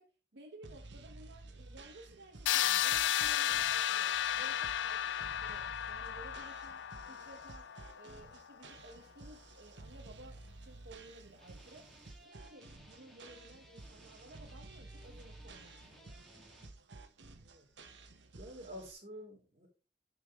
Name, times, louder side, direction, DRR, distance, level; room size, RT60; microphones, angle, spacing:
voice 1, 0.0-11.9 12.2-16.3, right 1 dB, 65° right, 0.9 m, -56 dB
sound 1, 0.6-18.9, right 2 dB, 90° right, 1.1 m, -53 dB
sound 2, 2.5-8.3, left 10 dB, 85° left, 0.4 m, -33 dB
sound 3, 10.5-11.0 11.3-16.7, equal, ahead, 1.6 m, -60 dB
voice 2, 18.3-19.7, equal, 35° right, 3.4 m, -49 dB
9.7 x 4.7 x 3.4 m
head